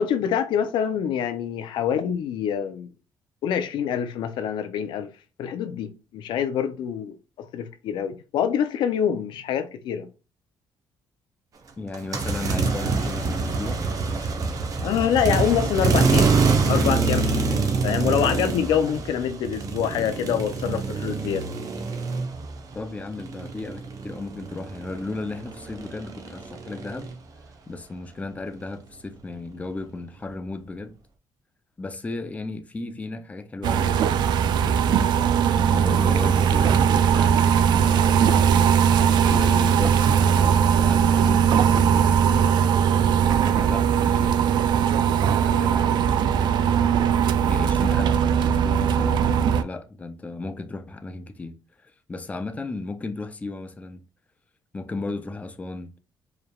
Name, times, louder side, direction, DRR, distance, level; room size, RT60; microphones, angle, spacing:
voice 1, 0.0-2.9 3.4-5.1 5.4-10.1 14.8-16.3 16.7-21.4, left 8 dB, 80° left, 0.5 m, -26 dB
voice 2, 11.8-13.8 22.7-27.1 27.7-30.9 31.8-42.5 43.4-47.0 47.5-54.0 54.7-55.9, left 3 dB, 20° left, 0.5 m, -35 dB
sound 1, 11.9-22.7 23.0-27.1, right 4 dB, 50° right, 0.9 m, -25 dB
sound 2, 33.6-49.6, right 8 dB, 70° right, 0.4 m, -19 dB
4.8 x 3.3 x 2.3 m
cardioid pair, 120°, 8 cm